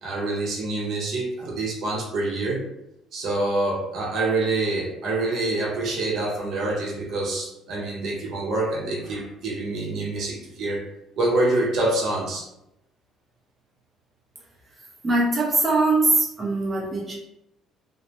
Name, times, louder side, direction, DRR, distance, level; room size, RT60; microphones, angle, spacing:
voice 1, 0.0-2.6 3.1-10.8 11.2-12.5, right 2 dB, 60° right, -2 dB, 0.8 m, -26 dB
voice 2, 15.0-17.2, right 2 dB, 20° right, -4 dB, 0.6 m, -21 dB
2.5 x 2.0 x 2.9 m, 0.85 s
cardioid pair, 115°, 0 cm